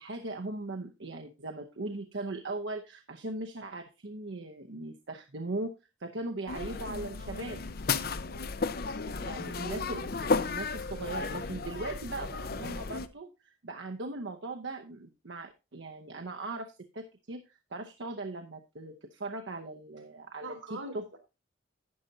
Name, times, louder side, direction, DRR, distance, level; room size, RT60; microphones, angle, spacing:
voice 1, 0.0-5.7 6.0-7.6 9.1-21.2, right 2 dB, 65° right, 4 dB, 0.8 m, -39 dB
sound 1, 6.5-13.1, left 4 dB, 50° left, 0.6 m, -34 dB
voice 2, 8.1-8.8 20.4-21.2, right 2 dB, 85° right, 6 dB, 2.4 m, -45 dB
12.0 x 8.8 x 2.7 m, 0.27 s
head